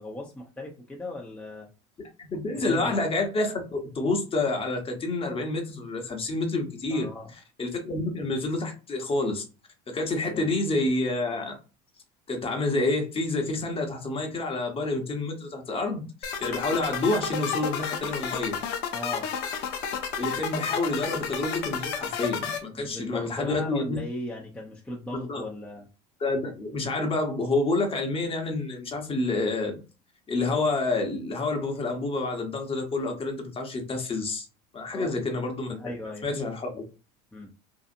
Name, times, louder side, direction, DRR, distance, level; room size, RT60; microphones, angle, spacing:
voice 1, 0.0-1.7 2.7-3.0 6.9-7.3 10.2-10.5 18.9-19.3 22.7-25.9 34.9-35.3 35.8-36.3 37.3-37.5, left 1 dB, 5° left, -2 dB, 0.6 m, -38 dB
voice 2, 2.2-7.1 7.6-9.4 9.9-11.6 12.3-18.6 20.2-24.0 25.1-25.4 26.2-29.8 30.3-34.5 34.7-35.7 36.2-36.8, left 2 dB, 30° left, 4 dB, 0.9 m, -28 dB
sound 1, 16.2-22.6, left 7 dB, 60° left, 0.7 m, -31 dB
2.7 x 2.4 x 2.5 m, 0.33 s
hypercardioid pair, 85°, 20 cm